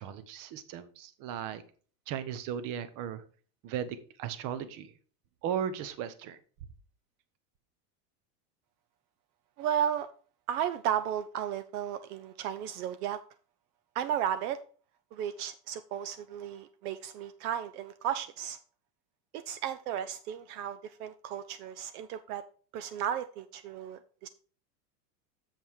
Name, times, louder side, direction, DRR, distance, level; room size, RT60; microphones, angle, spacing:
voice 1, 0.0-1.6 2.1-3.2 3.6-4.9 5.4-6.4, right 8 dB, 45° right, 13 dB, 0.9 m, -36 dB
voice 2, 9.6-10.1 10.5-13.2 13.9-14.6 15.1-18.6 19.3-22.4 22.7-24.3, right 9 dB, 70° right, 12 dB, 0.7 m, -34 dB
7.5 x 5.3 x 4.7 m, 0.42 s
supercardioid pair, 140°, 48 cm